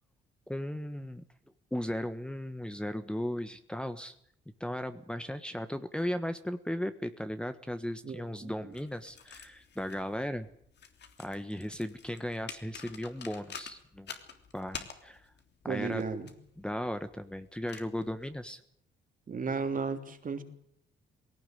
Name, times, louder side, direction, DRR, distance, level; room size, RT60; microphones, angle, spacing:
voice 1, 0.5-1.2 1.7-4.2 4.6-10.5 11.2-14.1 14.5-15.3 15.6-16.0 16.6-18.6, equal, 5° left, 10 dB, 1.4 m, -36 dB
voice 2, 8.0-8.7 15.6-16.3 19.3-20.4, right 5 dB, 45° right, 7 dB, 3.2 m, -34 dB
sound 1, 8.7-18.5, left 7 dB, 60° left, 3.3 m, -49 dB
20.0 x 17.5 x 9.3 m, 0.69 s
cardioid pair, 90°, 20 cm